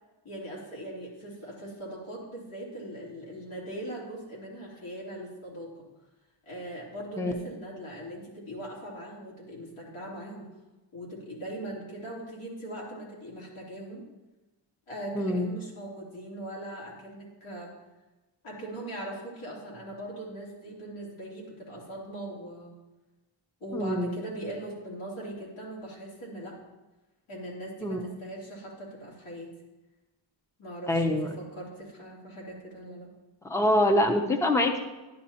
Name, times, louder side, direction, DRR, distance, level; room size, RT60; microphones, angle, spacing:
voice 1, 0.2-5.8 6.4-10.5 10.9-14.0 14.9-17.7 18.4-22.7 23.6-26.6 27.3-29.5 30.6-33.1, right 1 dB, 80° left, -5 dB, 3.2 m, -40 dB
voice 2, 15.1-15.5 23.7-24.2 27.8-28.0 30.9-31.3 33.4-34.8, left 1 dB, 5° left, 5 dB, 0.6 m, -25 dB
10.5 x 10.5 x 2.9 m, 1.1 s
wide cardioid pair, 150°, 48 cm